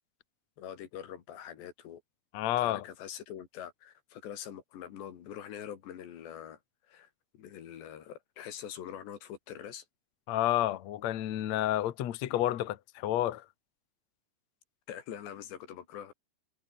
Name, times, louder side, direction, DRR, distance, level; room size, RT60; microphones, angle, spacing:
voice 1, 0.6-2.0 2.6-6.6 6.9-9.8 14.9-16.1, left 10 dB, 90° left, 4.8 m, -44 dB
voice 2, 2.3-2.8 10.3-13.4, left 13 dB, 60° left, 2.0 m, -30 dB
omnidirectional pair, 4.8 m